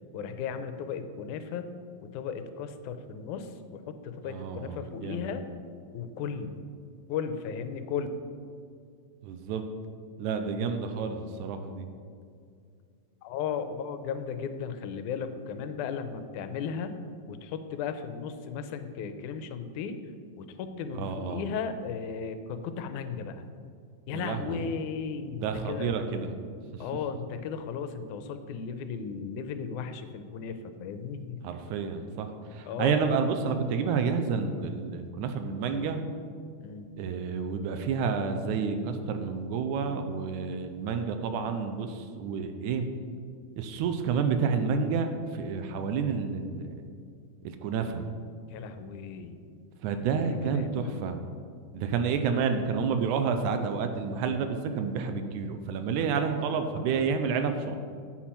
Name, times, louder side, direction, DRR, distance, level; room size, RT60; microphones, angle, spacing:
voice 1, 0.1-1.7 2.0-5.4 5.9-6.6 7.1-8.1 13.2-16.9 17.3-20.0 20.4-23.5 24.1-25.9 26.8-31.4 32.7-33.0 36.6-36.9 48.5-49.4 50.2-51.0, left 6 dB, 90° left, 9 dB, 2.1 m, -35 dB
voice 2, 4.2-5.3 9.2-9.6 10.2-11.9 20.9-21.5 24.1-24.7 25.3-26.4 31.4-36.0 37.0-42.9 43.5-45.1 45.3-46.8 47.4-48.1 49.8-51.2 51.7-57.8, right 5 dB, 90° right, 7 dB, 2.1 m, -30 dB
10.5 x 8.7 x 4.3 m, 2.3 s
omnidirectional pair, 3.4 m